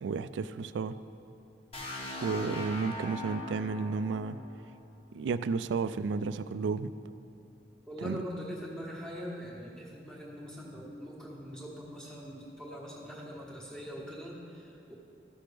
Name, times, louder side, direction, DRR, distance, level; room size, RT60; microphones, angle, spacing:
voice 1, 0.0-1.0 2.2-4.4 5.1-6.9 8.0-8.2, right 5 dB, 85° right, 13 dB, 0.3 m, -32 dB
sound 1, 1.7-5.6, left 1 dB, 35° left, 1.2 m, -41 dB
voice 2, 7.9-14.9, equal, 5° left, -4 dB, 1.2 m, -42 dB
14.0 x 6.0 x 3.4 m, 2.6 s
head